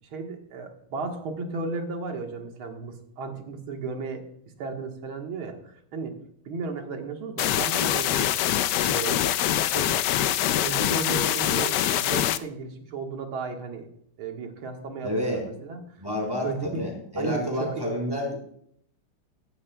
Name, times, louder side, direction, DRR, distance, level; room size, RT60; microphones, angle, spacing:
voice 1, 0.0-4.2 4.6-5.6 5.9-6.1 6.5-8.3 8.8-9.2 9.7-10.0 10.5-13.9 14.2-15.8 16.4-16.8 17.2-17.7, right 4 dB, 90° right, 3 dB, 2.3 m, -34 dB
sound 1, 7.4-12.4, left 12 dB, 75° left, 1.0 m, -24 dB
voice 2, 15.0-15.5 16.0-18.3, left 1 dB, 10° right, -1 dB, 4.3 m, -29 dB
15.5 x 15.0 x 2.3 m, 0.69 s
omnidirectional pair, 2.2 m